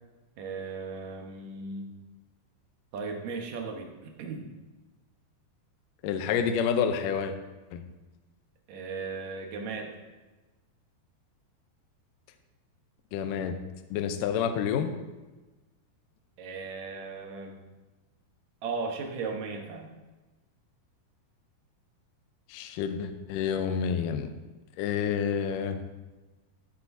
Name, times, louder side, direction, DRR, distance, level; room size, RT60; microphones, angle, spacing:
voice 1, 0.4-1.9 2.9-4.5 8.7-9.9 16.4-17.6 18.6-19.9, right 4 dB, 65° right, 2 dB, 1.8 m, -36 dB
voice 2, 6.0-7.3 7.7-7.8 13.1-13.6 13.9-14.9 22.5-24.3 24.8-25.8, left 7 dB, 90° left, 7 dB, 1.9 m, -28 dB
13.5 x 11.0 x 2.7 m, 1.2 s
omnidirectional pair, 4.9 m